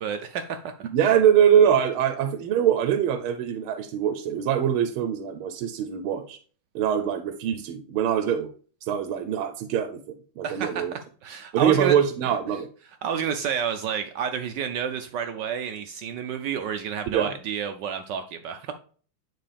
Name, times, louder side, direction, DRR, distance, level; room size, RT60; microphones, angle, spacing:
voice 1, 0.0-0.7 1.0-1.1 10.4-12.0 13.0-18.7, right 7 dB, 75° right, 7 dB, 1.1 m, -30 dB
voice 2, 0.9-6.4 6.7-8.5 8.8-10.0 10.4-10.9 11.5-12.7 17.1-17.3, right 9 dB, 90° right, 8 dB, 1.5 m, -23 dB
9.2 x 3.8 x 3.4 m, 0.42 s
omnidirectional pair, 2.2 m